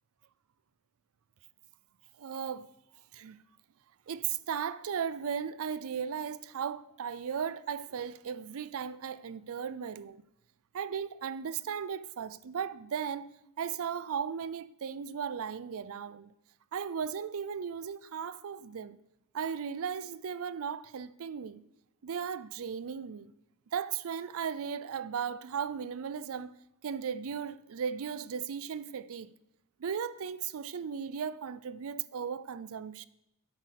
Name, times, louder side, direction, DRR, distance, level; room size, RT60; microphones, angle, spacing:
voice 1, 2.2-2.7 3.1-3.4 4.1-10.2 10.7-13.3 13.6-16.3 16.7-19.0 19.3-21.6 22.0-23.3 23.7-26.5 26.8-29.3 29.8-33.1, right 7 dB, 65° right, 0.4 m, -36 dB
8.3 x 7.8 x 6.5 m
head